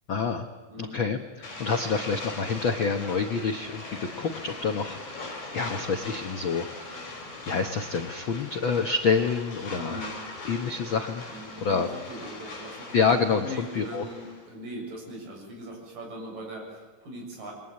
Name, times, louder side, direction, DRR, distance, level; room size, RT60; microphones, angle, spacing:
voice 1, 0.1-0.4 0.8-7.2 7.5-10.1 10.4-11.2 11.6-11.9 12.9-14.1, left 5 dB, 75° left, 5 dB, 1.1 m, -27 dB
voice 2, 0.7-1.0 9.7-10.2 11.3-12.9 13.4-17.5, equal, 65° right, 1 dB, 8.5 m, -40 dB
sound 1, 1.4-14.5, left 2 dB, 55° left, 6.6 m, -41 dB
28.0 x 22.5 x 8.8 m, 1.3 s
omnidirectional pair, 4.1 m